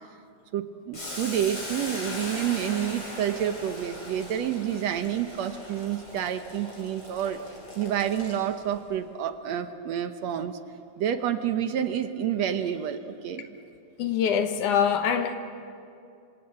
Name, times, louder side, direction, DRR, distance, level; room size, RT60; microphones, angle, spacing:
voice 1, 0.5-7.4 7.8-10.6 11.0-13.5, right 9 dB, 70° right, 1.7 m, -29 dB
Boiling, 0.9-8.7, left 1 dB, 35° left, 7.5 m, -39 dB
voice 2, 14.0-15.4, left 7 dB, 65° left, 2.3 m, -24 dB
26.5 x 26.5 x 8.2 m
omnidirectional pair, 4.2 m